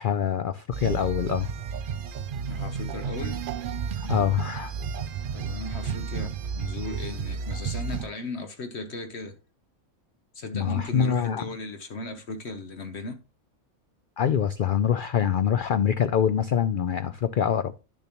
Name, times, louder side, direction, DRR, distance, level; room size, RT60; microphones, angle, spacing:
voice 1, 0.0-1.5 4.0-4.7 10.5-11.4 14.2-17.7, left 8 dB, 85° left, 0.4 m, -25 dB
sound 1, 0.7-8.1, right 6 dB, 65° right, 0.5 m, -32 dB
voice 2, 2.5-3.4 5.3-6.3 6.5-9.4 10.3-13.2, left 2 dB, 55° left, 1.1 m, -36 dB
10.5 x 6.8 x 2.9 m
omnidirectional pair, 1.4 m